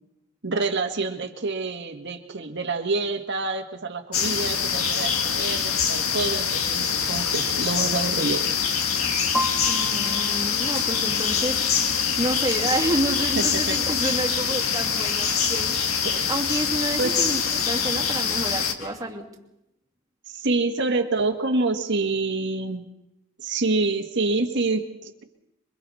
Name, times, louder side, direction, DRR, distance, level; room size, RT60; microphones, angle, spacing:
voice 1, 0.4-8.5 13.4-13.8 16.0-16.2 17.0-17.2 20.3-22.9 23.4-25.2, right 3 dB, 55° right, 6 dB, 1.7 m, -27 dB
sound 1, 4.1-18.7, left 7 dB, 90° left, 1.7 m, -24 dB
sound 2, 9.3-17.2, equal, ahead, 1.4 m, -38 dB
voice 2, 9.5-19.3, right 1 dB, 20° right, -1 dB, 2.6 m, -29 dB
sound 3, 14.1-14.2 14.5-14.7 16.0-16.2 16.9-17.5 17.8-18.1 18.8-19.1, right 1 dB, 70° left, 7.8 m, -45 dB
27.0 x 24.0 x 4.2 m, 0.87 s
head